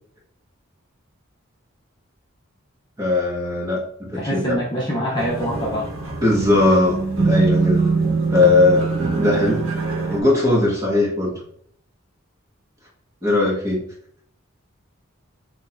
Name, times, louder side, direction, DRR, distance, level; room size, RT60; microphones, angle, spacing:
voice 1, 3.0-4.5 6.2-7.9 8.3-9.8 10.1-11.4 13.2-13.8, left 2 dB, 15° right, -4 dB, 1.4 m, -19 dB
voice 2, 4.1-5.9, equal, 20° left, -5 dB, 1.0 m, -24 dB
sound 1, 5.2-10.2, right 4 dB, 85° right, 1.3 m, -22 dB
6.3 x 3.0 x 2.5 m, 0.63 s
head